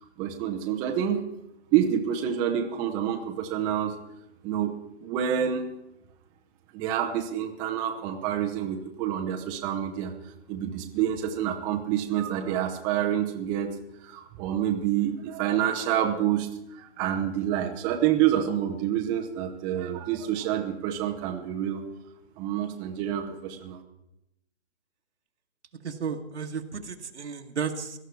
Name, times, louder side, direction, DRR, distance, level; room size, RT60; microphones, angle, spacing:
voice 1, 0.2-1.3 1.7-4.0 4.4-5.7 6.7-10.1 10.5-13.7 14.0-21.8 22.4-23.8, right 10 dB, 10° right, 2 dB, 0.6 m, -28 dB
voice 2, 25.8-28.0, right 6 dB, 80° right, 3 dB, 1.5 m, -33 dB
17.5 x 12.5 x 4.7 m, 0.89 s
hypercardioid pair, 150°, 34 cm